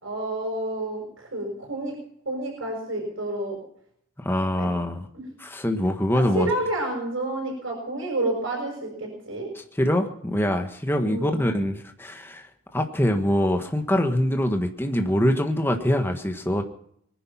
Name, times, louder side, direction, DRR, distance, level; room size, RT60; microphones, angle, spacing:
voice 1, 0.0-1.9 2.2-3.6 4.5-4.7 5.1-5.2 6.1-9.5 11.0-11.5, right 2 dB, 65° right, -1 dB, 6.2 m, -29 dB
voice 2, 4.2-5.1 5.4-6.5 9.7-12.5 12.7-16.6, left 1 dB, 10° left, 4 dB, 1.4 m, -24 dB
23.0 x 10.5 x 5.7 m, 0.68 s
head